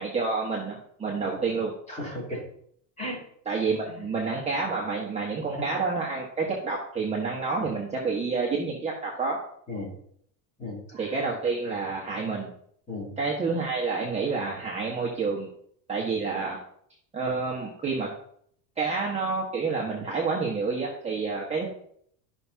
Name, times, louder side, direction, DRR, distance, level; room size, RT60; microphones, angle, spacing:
voice 1, 0.0-1.7 3.4-9.4 10.9-12.5 13.2-15.5 15.9-16.6 17.1-18.1 18.8-21.7, right 4 dB, 15° right, -4 dB, 1.4 m, -29 dB
voice 2, 1.9-2.4 3.0-3.2 3.9-4.0 5.5-5.7 7.5-7.7 9.7-9.9 10.6-11.2 12.9-13.2, left 1 dB, 15° left, -3 dB, 3.7 m, -36 dB
13.5 x 6.0 x 2.8 m, 0.65 s
supercardioid pair, 145°, 45 cm